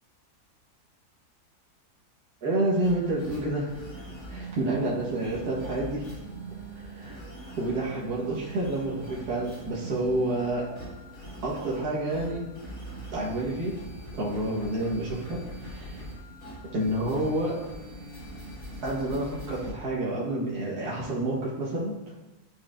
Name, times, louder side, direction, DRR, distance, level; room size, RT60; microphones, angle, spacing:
voice 1, 2.4-3.7 4.3-6.0 6.7-7.2 7.6-10.6 11.4-12.4 13.1-13.7 14.1-16.0 16.7-17.5 18.8-22.2, right 1 dB, 70° right, -6 dB, 1.8 m, -29 dB
sound 1, 2.8-19.7, right 2 dB, 45° left, 2.9 m, -42 dB
11.0 x 4.3 x 2.5 m, 1.1 s
omnidirectional pair, 1.7 m